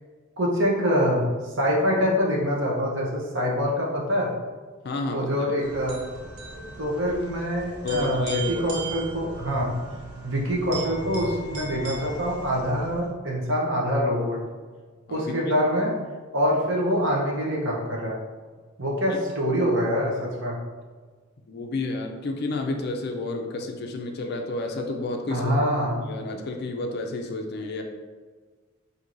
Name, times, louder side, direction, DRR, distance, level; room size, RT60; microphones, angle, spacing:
voice 1, 0.4-1.2 1.6-4.3 5.1-6.0 6.5-9.7 10.2-14.4 15.1-15.9 16.3-18.2 18.8-20.6 25.3-26.0, equal, 60° right, -3 dB, 0.8 m, -25 dB
voice 2, 4.8-5.3 7.8-8.9 15.1-15.6 19.1-19.2 21.5-25.5 25.9-27.8, left 3 dB, 45° left, 3 dB, 0.4 m, -30 dB
sound 1, 5.6-13.1, right 3 dB, 90° right, 0.6 m, -38 dB
4.5 x 2.6 x 2.5 m, 1.5 s
head